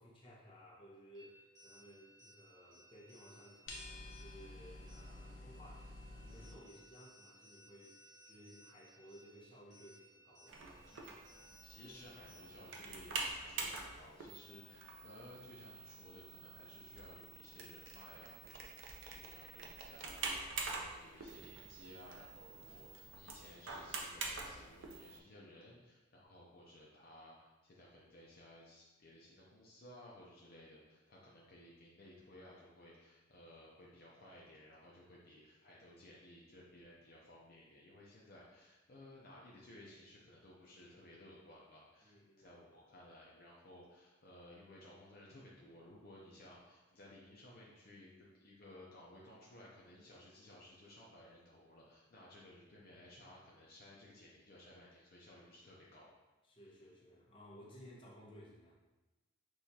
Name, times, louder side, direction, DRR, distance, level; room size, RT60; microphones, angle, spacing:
voice 1, 0.0-10.6 20.7-20.9 42.0-42.5 52.8-52.9 56.4-58.7, equal, 25° left, -4 dB, 0.9 m, -58 dB
sound 1, 1.1-12.7, equal, 20° right, 1.2 m, -63 dB
sound 2, 3.7-6.5, left 2 dB, 85° left, 0.8 m, -50 dB
sound 3, 10.5-25.2, right 4 dB, 80° right, 0.6 m, -46 dB
voice 2, 11.6-56.1, left 1 dB, 50° left, -4 dB, 0.6 m, -58 dB
6.2 x 2.4 x 2.7 m, 1.1 s
head